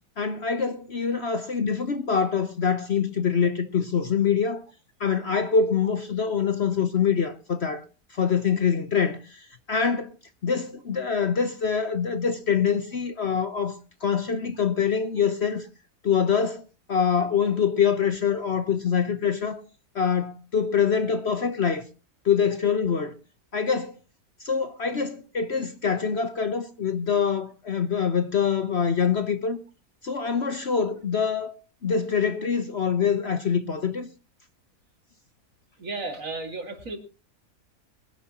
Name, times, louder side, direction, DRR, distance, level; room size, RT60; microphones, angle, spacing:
voice 1, 0.2-4.6 5.0-7.8 8.1-10.1 10.4-15.7 16.0-16.6 16.9-19.6 19.9-21.8 22.2-23.1 23.5-23.9 24.4-29.6 30.0-31.6 31.8-34.1, left 6 dB, 45° left, 1.0 m, -25 dB
voice 2, 35.8-37.0, right 3 dB, 50° right, 2.7 m, -33 dB
22.5 x 11.5 x 2.9 m
omnidirectional pair, 1.7 m